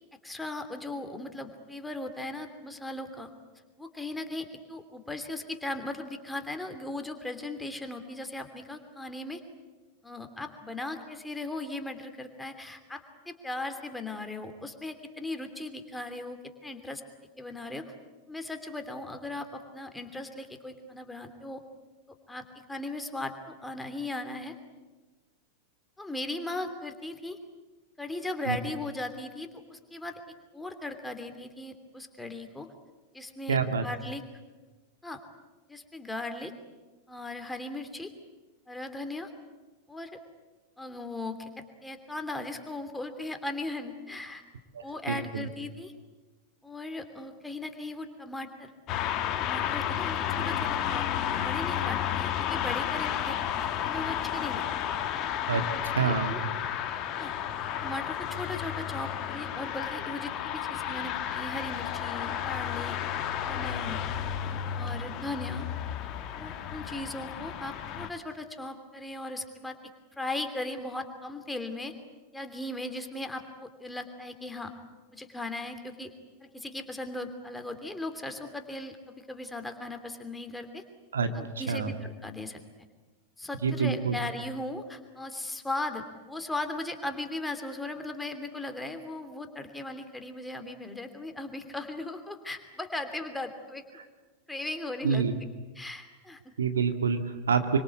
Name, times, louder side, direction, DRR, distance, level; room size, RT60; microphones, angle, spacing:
voice 1, 0.2-3.3 3.8-9.4 10.0-17.0 17.4-17.9 18.3-21.6 22.3-24.6 26.0-27.4 28.0-30.2 30.5-32.7 33.1-33.6 33.8-34.2 35.0-35.2 35.7-36.5 37.1-38.1 38.7-39.3 39.9-40.2 40.8-44.4 44.8-45.9 46.6-48.7 49.4-54.6 55.5-56.4 57.2-57.3 57.8-64.0 64.8-65.7 66.4-69.8 70.2-71.9 72.3-74.7 75.1-76.1 76.4-80.8 81.3-82.6 83.4-93.8 94.5-95.3 95.7-96.5, left 2 dB, 5° left, 6 dB, 3.0 m, -38 dB
voice 2, 33.5-33.8 44.7-45.5 55.5-55.6 55.9-56.4 81.1-81.3 81.7-81.9 83.6-84.2 95.0-95.3 96.6-97.8, right 5 dB, 70° right, 7 dB, 2.0 m, -27 dB
sound 1, 48.9-68.1, left 10 dB, 35° left, 1.8 m, -32 dB
26.0 x 25.0 x 8.4 m, 1.2 s
figure-of-eight pair, 90°, 0 cm